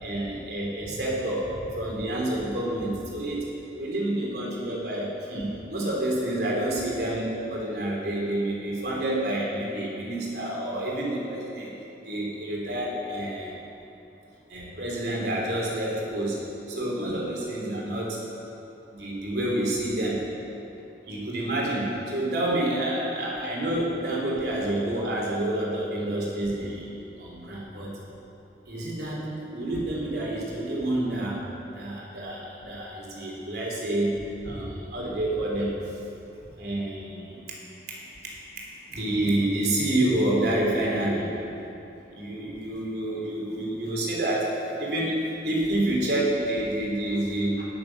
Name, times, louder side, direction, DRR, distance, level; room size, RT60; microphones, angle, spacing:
voice 1, 0.0-3.4 3.8-11.7 12.0-13.6 14.5-16.4 16.7-18.2 18.9-20.2 21.1-26.9 27.2-28.0 28.7-31.4 31.7-34.1 34.4-35.8 36.6-37.3 37.9-41.4 42.1-44.5 44.8-45.2 45.4-47.7, right 1 dB, 65° right, -3 dB, 3.3 m, -28 dB
20.0 x 7.1 x 6.0 m, 2.9 s
head